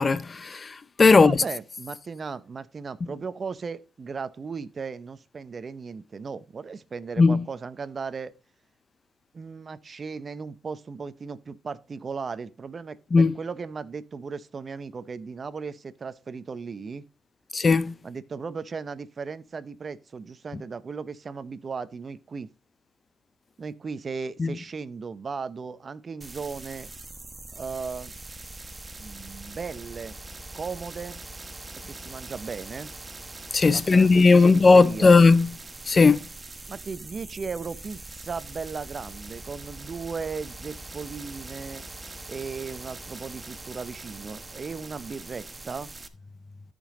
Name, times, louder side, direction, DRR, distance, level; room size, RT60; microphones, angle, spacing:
voice 1, 0.0-1.4 7.2-7.4 13.1-13.3 17.5-17.9 24.4-24.5 33.5-35.5 35.9-36.3, left 4 dB, 30° left, 0.5 m, -17 dB
voice 2, 1.1-8.3 9.3-17.0 18.0-22.5 23.6-26.9 27.5-28.1 29.0-30.2 30.5-31.2 31.9-32.9 33.7-35.1 36.7-41.8 42.3-45.9, right 5 dB, 40° right, 0.6 m, -36 dB
sound 1, 26.2-46.1, right 2 dB, 20° right, 1.0 m, -42 dB
13.5 x 5.3 x 3.7 m
cardioid pair, 90°, 0 cm